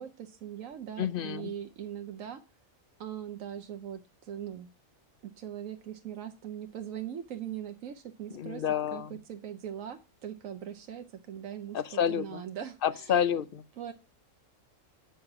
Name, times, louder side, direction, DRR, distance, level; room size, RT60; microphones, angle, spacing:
voice 1, 0.0-2.4 3.0-4.7 5.4-8.6 8.9-11.8 12.1-13.1 13.8-13.9, right 9 dB, 85° right, 1.2 m, -40 dB
voice 2, 1.0-1.5 8.3-9.1 11.7-12.4 12.8-13.6, left 8 dB, 55° left, 0.7 m, -29 dB
8.8 x 5.9 x 4.7 m
omnidirectional pair, 1.3 m